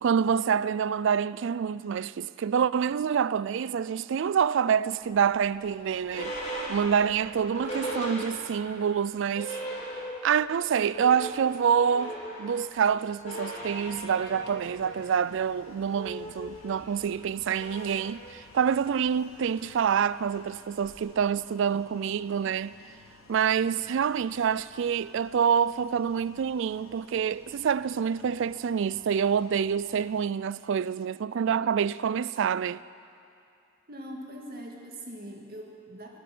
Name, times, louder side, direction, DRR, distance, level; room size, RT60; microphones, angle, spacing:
voice 1, 0.0-6.3 6.7-9.6 10.2-22.7 23.3-32.8, right 7 dB, 65° right, 0.3 m, -27 dB
sound 1, 5.1-8.8 9.1-9.2 9.3-10.4 10.7-21.2, right 1 dB, 35° left, 3.6 m, -39 dB
sound 2, 13.6-30.3, left 3 dB, 85° left, 1.1 m, -55 dB
voice 2, 33.9-36.2, right 1 dB, 50° right, 2.0 m, -42 dB
20.0 x 10.0 x 6.1 m
head